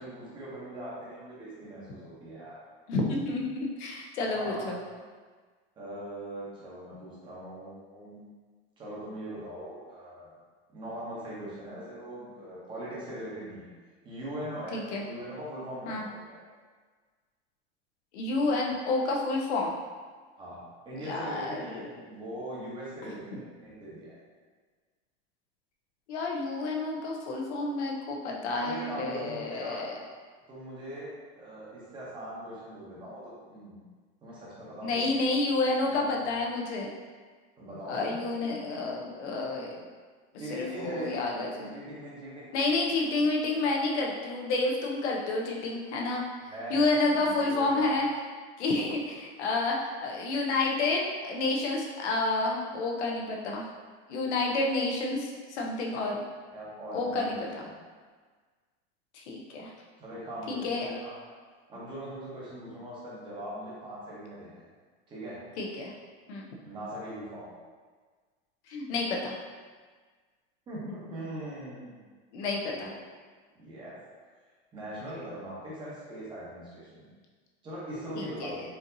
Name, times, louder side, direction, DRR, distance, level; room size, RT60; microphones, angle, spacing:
voice 1, 0.0-2.6 4.3-4.7 5.8-8.2 8.8-10.3 10.7-13.7 14.0-16.4 20.4-20.6 20.8-24.2 28.6-29.8 30.5-33.2 33.5-33.8 34.2-35.2 35.9-36.2 37.6-38.2 40.4-41.3 41.7-42.6 46.4-46.8 47.1-47.9 56.5-57.4 60.0-61.1 61.7-64.6 65.1-65.4 66.6-67.5 70.7-72.0 72.4-72.9 73.6-74.0 74.7-77.1 77.6-78.6, right 1 dB, 15° right, -7 dB, 0.8 m, -41 dB
voice 2, 2.9-4.8 14.7-15.0 15.9-16.0 18.1-19.7 21.0-22.0 23.3-23.4 26.1-30.0 34.8-36.9 37.9-39.9 40.5-41.7 42.5-46.2 46.7-48.1 48.6-53.7 54.1-56.2 56.9-57.6 59.1-59.7 60.5-60.9 65.6-65.9 66.3-66.5 68.7-69.4 72.3-72.9 78.2-78.6, left 2 dB, 75° left, -1 dB, 0.8 m, -30 dB
4.4 x 2.6 x 2.6 m, 1.5 s
supercardioid pair, 165°, 34 cm